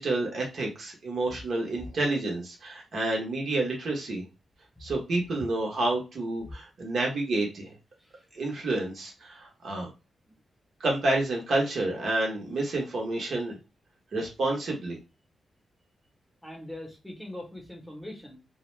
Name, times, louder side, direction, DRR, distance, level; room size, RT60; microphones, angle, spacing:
voice 1, 0.0-4.2 4.8-7.7 8.3-9.9 10.8-13.6 14.1-15.0, right 2 dB, 55° right, -1 dB, 0.8 m, -29 dB
voice 2, 16.4-18.4, left 1 dB, 5° left, -2 dB, 0.8 m, -42 dB
2.3 x 2.2 x 3.1 m, 0.27 s
wide cardioid pair, 160°, 0 cm